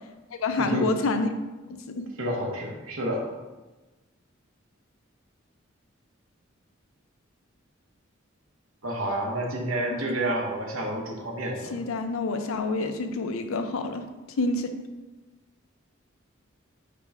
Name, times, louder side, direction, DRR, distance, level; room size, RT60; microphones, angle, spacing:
voice 1, 0.4-1.3 1.7-2.1 9.9-10.0 11.7-14.1 14.4-14.7, left 3 dB, 90° left, 7 dB, 0.5 m, -28 dB
voice 2, 2.2-3.3 8.8-11.8, right 1 dB, 85° right, 0 dB, 0.9 m, -29 dB
5.1 x 2.2 x 4.7 m, 1.2 s
head